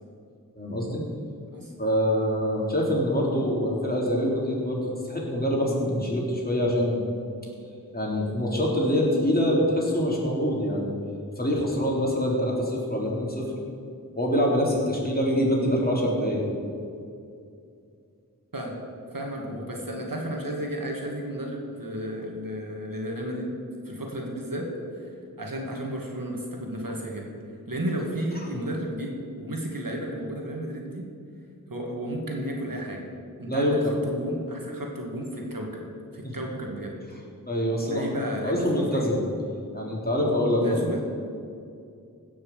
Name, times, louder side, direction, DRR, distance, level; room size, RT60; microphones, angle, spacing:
voice 1, 0.6-1.0 1.8-4.8 5.1-7.0 7.9-10.9 11.4-13.5 14.2-16.4 19.4-19.5 33.5-33.9 36.2-36.6 37.5-38.0 38.4-39.3 39.7-40.8, equal, 25° left, -3 dB, 3.5 m, -25 dB
voice 2, 19.1-23.6 23.8-25.1 25.4-27.3 27.7-31.0 31.7-33.0 33.4-35.9 36.1-37.0 37.9-39.1 40.6-41.0, right 1 dB, 75° right, 0 dB, 2.3 m, -33 dB
16.5 x 6.4 x 7.6 m, 2.4 s
wide cardioid pair, 40°, 34 cm